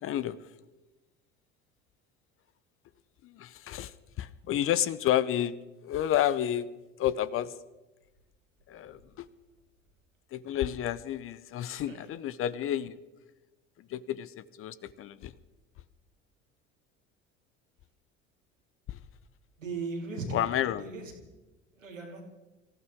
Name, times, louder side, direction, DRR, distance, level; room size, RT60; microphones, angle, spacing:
voice 1, 0.0-0.4 3.2-5.5 5.8-6.7 7.0-7.6 8.7-9.3 10.3-13.0 13.8-15.3 18.9-19.0 20.3-20.9, left 11 dB, 35° left, 17 dB, 0.7 m, -30 dB
voice 2, 19.6-20.4 20.8-21.1 21.8-22.2, right 3 dB, 80° right, 1 dB, 2.8 m, -37 dB
25.5 x 15.0 x 3.6 m, 1.1 s
figure-of-eight pair, 65°, 38 cm